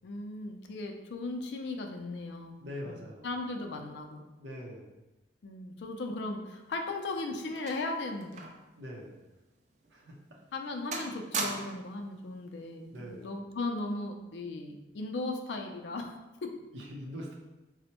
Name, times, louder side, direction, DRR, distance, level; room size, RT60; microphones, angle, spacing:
voice 1, 0.0-2.6 2.8-3.0 3.2-4.3 5.4-8.5 10.5-16.2 16.4-16.5, left 2 dB, 75° left, 4 dB, 0.4 m, -37 dB
voice 2, 2.6-3.3 4.4-4.9 8.8-9.2 9.9-10.2 12.9-13.3 16.7-17.3, equal, 85° right, -1 dB, 0.6 m, -42 dB
sound 1, 6.6-8.7 9.0-9.2 9.8-10.0 10.4-10.7 10.9-12.0 13.0-13.2, right 4 dB, 40° right, 0.3 m, -39 dB
4.2 x 2.0 x 2.9 m, 1.1 s
head